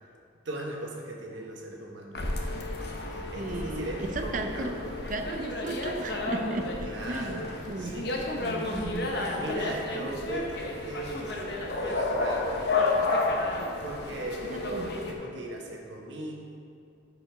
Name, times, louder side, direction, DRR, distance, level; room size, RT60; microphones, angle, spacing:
voice 1, 0.4-2.7 3.0-4.8 6.8-8.5 9.3-11.5 11.8-12.9 13.8-16.3, right 1 dB, 80° right, -1 dB, 1.3 m, -38 dB
sound 1, 2.1-15.1, left 2 dB, 60° left, 0.9 m, -31 dB
voice 2, 3.4-4.7 5.1-7.9 8.4-9.3 14.5-14.9, right 2 dB, 45° right, 5 dB, 0.6 m, -35 dB
13.0 x 5.1 x 3.6 m, 2.4 s
head